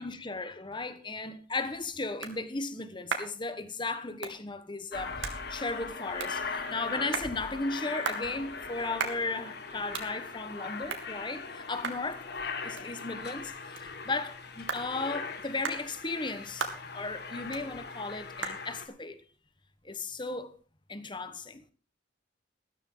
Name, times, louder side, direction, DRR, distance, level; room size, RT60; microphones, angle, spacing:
voice 1, 0.0-12.3 12.6-19.2 19.8-20.5 20.9-21.7, left 3 dB, 25° left, 1.2 m, -36 dB
sound 1, 1.3-20.6, right 5 dB, 80° right, 2.4 m, -42 dB
Aircraft, 4.9-18.9, left 4 dB, 55° left, 1.7 m, -40 dB
13.5 x 13.5 x 3.8 m
head